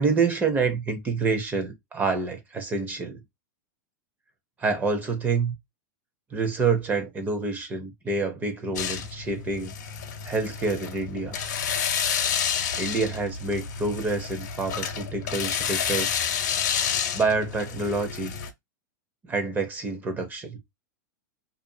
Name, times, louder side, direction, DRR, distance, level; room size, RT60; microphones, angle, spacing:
voice 1, 0.0-3.2 4.6-5.5 6.3-9.7 10.2-11.4 12.8-16.2 17.1-18.3 19.2-20.6, right 4 dB, 20° right, 0.7 m, -27 dB
sound 1, 8.8-18.5, left 8 dB, 75° left, 0.8 m, -29 dB
2.6 x 2.5 x 2.6 m
hypercardioid pair, 130°, 10 cm